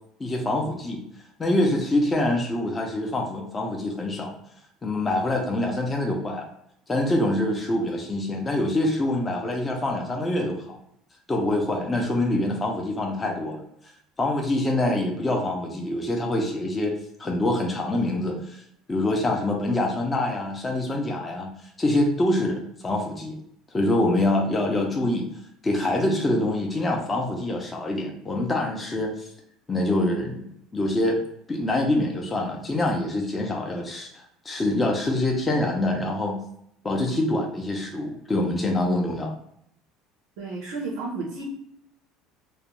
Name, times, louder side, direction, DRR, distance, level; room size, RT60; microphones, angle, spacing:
voice 1, 0.2-1.0 1.4-4.3 4.8-6.5 6.9-10.8 11.3-13.6 14.2-18.6 18.9-21.5 21.8-23.4 23.7-25.3 25.6-29.3 29.7-30.5 30.7-31.2 31.5-36.4 36.8-39.3, left 1 dB, 20° left, 1 dB, 0.4 m, -25 dB
voice 2, 40.4-41.4, right 3 dB, 85° right, -1 dB, 0.5 m, -32 dB
2.3 x 2.1 x 2.9 m, 0.72 s
cardioid pair, 135°, 0 cm